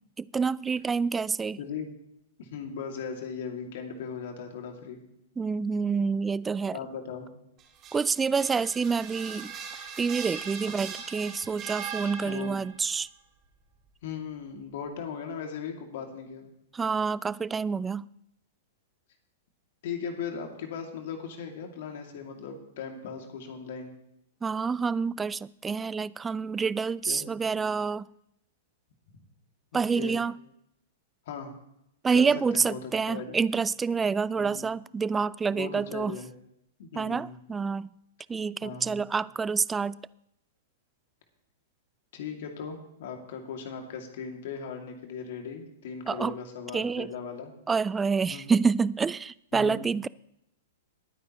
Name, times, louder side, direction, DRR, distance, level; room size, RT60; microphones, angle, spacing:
voice 1, 0.2-1.6 5.4-6.8 7.9-9.5 10.0-13.1 16.7-18.0 24.4-28.0 29.7-30.3 32.0-36.2 37.0-37.9 38.3-40.0 46.1-46.4 46.7-47.1 47.7-50.1, right 5 dB, 15° right, 0.3 m, -27 dB
voice 2, 2.4-5.0 6.7-7.3 12.2-12.6 14.0-16.5 19.8-23.9 27.0-27.2 29.1-29.2 29.7-30.2 31.3-31.5 32.1-33.4 34.3-34.7 35.5-36.3 36.8-37.4 38.6-39.1 42.1-47.5 48.3-48.5 49.5-49.9, left 6 dB, 60° left, 2.4 m, -38 dB
sound 1, 7.6-12.8, right 7 dB, 30° right, 2.4 m, -40 dB
20.5 x 9.4 x 3.1 m
hypercardioid pair, 110°, 0 cm